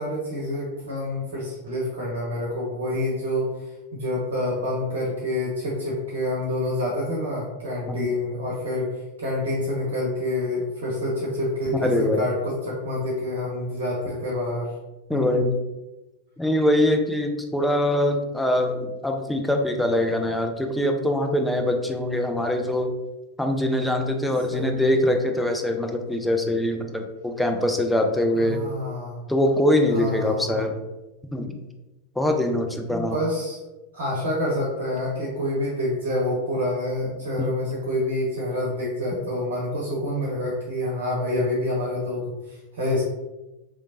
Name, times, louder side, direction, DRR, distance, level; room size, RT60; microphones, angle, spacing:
voice 1, 0.0-14.7 15.1-15.3 24.5-24.7 28.3-29.2 29.9-30.7 32.9-33.6 33.9-43.0, left 1 dB, 60° right, -4 dB, 0.8 m, -27 dB
voice 2, 11.7-12.2 15.1-15.5 16.4-22.9 23.4-28.6 29.3-30.8 31.3-31.6 32.2-33.2 37.4-37.5, left 1 dB, 5° left, 3 dB, 0.3 m, -23 dB
3.0 x 2.1 x 2.6 m, 1.0 s
figure-of-eight pair, 90°, 0 cm